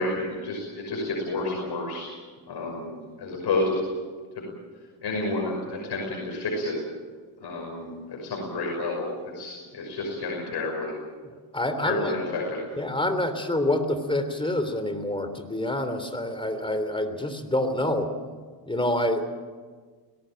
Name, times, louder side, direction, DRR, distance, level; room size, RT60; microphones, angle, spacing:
voice 1, 0.0-2.1 2.5-3.7 4.4-4.5 5.0-6.7 7.4-10.9 11.8-12.7, left 2 dB, 60° left, -1 dB, 6.2 m, -30 dB
voice 2, 11.5-12.1 12.8-18.1 18.7-19.3, left 1 dB, 10° left, 8 dB, 3.3 m, -27 dB
22.0 x 18.5 x 9.0 m, 1.5 s
cardioid pair, 100°, 44 cm